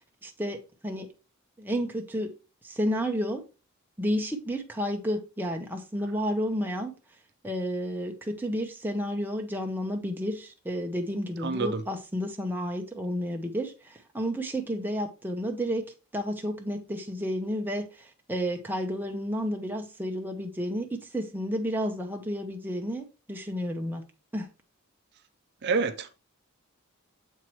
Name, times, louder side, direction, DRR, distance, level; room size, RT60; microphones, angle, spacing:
voice 1, 0.2-1.1 1.6-2.3 2.6-3.4 4.0-6.9 7.4-15.9 16.1-24.0 24.3-24.5, equal, 10° right, 0.7 m, -31 dB
voice 2, 11.4-11.8 25.6-26.1, right 4 dB, 50° right, 0.5 m, -27 dB
7.3 x 4.6 x 3.0 m
head